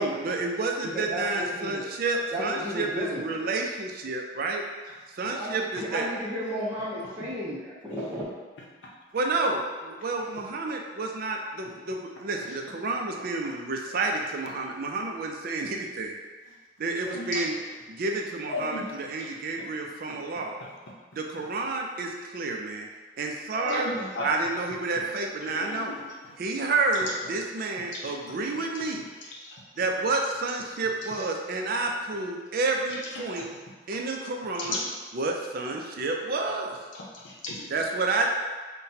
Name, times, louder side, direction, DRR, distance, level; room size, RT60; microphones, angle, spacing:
voice 1, 0.0-4.6 5.1-6.0 9.1-16.1 16.8-17.5 17.9-20.5 21.1-22.9 23.2-23.9 24.2-25.9 26.4-29.1 29.8-33.5 33.9-34.8 35.1-36.8 37.7-38.3, right 3 dB, 50° right, 1 dB, 0.4 m, -30 dB
voice 2, 0.9-1.8 2.3-3.4 5.3-8.2, equal, 10° right, -12 dB, 0.7 m, -33 dB
voice 3, 17.0-17.4 18.5-18.9 20.6-20.7 23.6-24.3 25.4-25.9 26.3-26.4 27.9-28.1 29.4-29.6 32.9-33.0 33.4-33.6 34.6-34.9 36.9-37.7, left 2 dB, 75° left, -4 dB, 0.7 m, -35 dB
5.6 x 2.2 x 2.7 m, 1.4 s
head